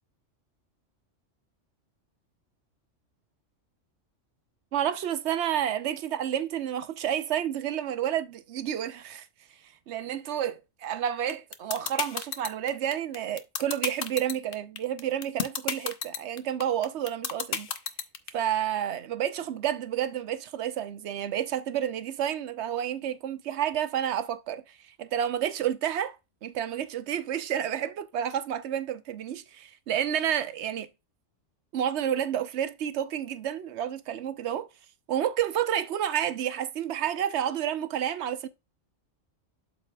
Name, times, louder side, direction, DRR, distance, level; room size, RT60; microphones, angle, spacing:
voice 1, 4.7-9.3 9.9-17.7 18.3-26.2 26.4-30.9 31.7-34.7 35.1-38.5, right 10 dB, 65° right, 0.9 m, -30 dB
sound 1, 11.3-18.3, left 7 dB, 50° left, 0.8 m, -30 dB
12.0 x 4.1 x 2.3 m
omnidirectional pair, 1.3 m